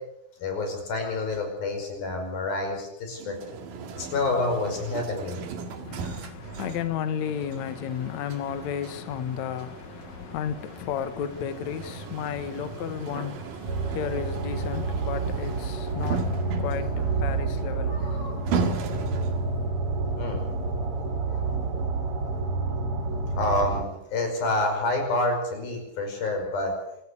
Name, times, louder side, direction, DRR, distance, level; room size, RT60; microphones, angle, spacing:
voice 1, 0.4-3.4 4.0-5.4 5.7-6.1 17.9-18.4 20.2-20.5 21.3-21.4 23.3-26.7, left 2 dB, 90° left, 7.4 m, -28 dB
sound 1, 3.2-19.6, right 4 dB, 70° right, 3.6 m, -37 dB
voice 2, 5.8-18.8, left 8 dB, 60° left, 2.3 m, -33 dB
sound 2, 13.7-23.8, right 3 dB, 40° right, 3.2 m, -29 dB
26.5 x 14.5 x 8.5 m
omnidirectional pair, 4.1 m